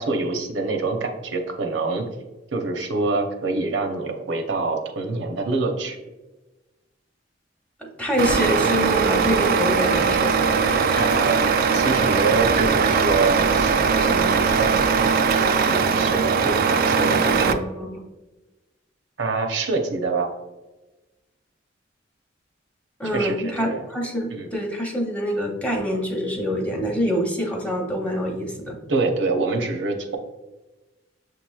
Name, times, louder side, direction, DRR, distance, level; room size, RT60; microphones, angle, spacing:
voice 1, 0.0-2.0 2.5-6.0 10.9-14.7 15.0-15.2 15.7-17.6 19.2-20.3 23.1-23.8 24.3-24.5 28.9-30.2, right 3 dB, 80° right, 3 dB, 0.7 m, -26 dB
voice 2, 7.8-10.4 10.9-11.1 13.9-14.6 17.3-18.0 23.0-28.8, equal, 5° left, 0 dB, 0.7 m, -26 dB
Truck, 8.2-17.5, right 5 dB, 50° right, 0.3 m, -20 dB
6.5 x 3.0 x 2.3 m, 1.1 s
head